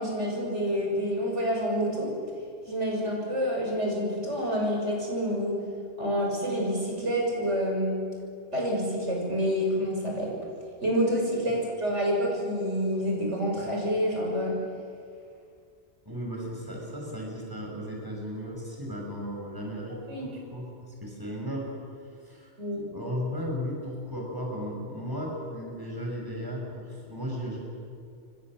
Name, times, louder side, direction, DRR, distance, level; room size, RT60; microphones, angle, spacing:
voice 1, 0.0-2.1 2.7-5.5 6.0-8.0 8.5-10.3 10.8-14.6 19.9-20.3 22.6-22.8, equal, 85° right, -1 dB, 6.7 m, -28 dB
voice 2, 16.0-21.7 22.2-22.5 22.9-27.6, equal, 20° right, -1 dB, 6.4 m, -35 dB
28.0 x 24.5 x 7.6 m, 2.3 s
omnidirectional pair, 1.2 m